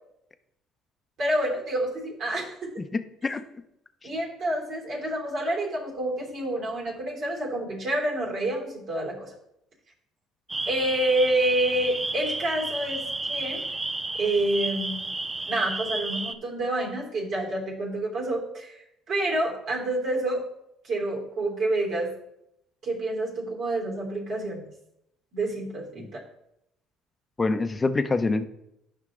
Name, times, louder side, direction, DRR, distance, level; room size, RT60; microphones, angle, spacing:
voice 1, 1.2-2.8 4.0-9.3 10.6-13.6 14.1-15.2 15.5-18.8 19.1-20.4 20.8-22.1 22.8-24.6 25.3-26.2, right 1 dB, 55° right, -2 dB, 3.2 m, -28 dB
voice 2, 2.8-3.4 26.0-26.1 27.4-28.5, left 3 dB, 25° left, 9 dB, 0.8 m, -26 dB
sound 1, 10.5-16.3, right 2 dB, 20° right, 0.6 m, -32 dB
9.7 x 5.7 x 3.8 m, 0.80 s
supercardioid pair, 75°, 0 cm